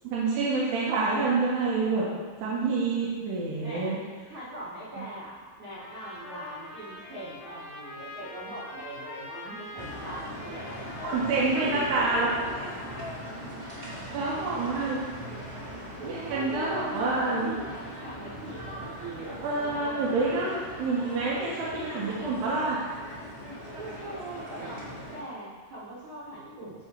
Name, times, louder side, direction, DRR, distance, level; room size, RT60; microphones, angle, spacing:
voice 1, 0.0-2.1 2.4-4.0 5.0-5.1 11.0-12.3 14.1-15.0 16.0-17.6 19.4-22.8, right 3 dB, 85° right, -7 dB, 3.3 m, -27 dB
voice 2, 3.6-4.0 4.2-12.7 15.3-20.4 23.8-26.9, right 1 dB, 50° right, -10 dB, 1.5 m, -41 dB
Trumpet, 5.7-13.5, left 2 dB, 80° left, 3.3 m, -44 dB
sound 1, 9.7-25.2, equal, 30° right, 0.8 m, -40 dB
15.0 x 5.0 x 3.0 m, 1.4 s
omnidirectional pair, 4.6 m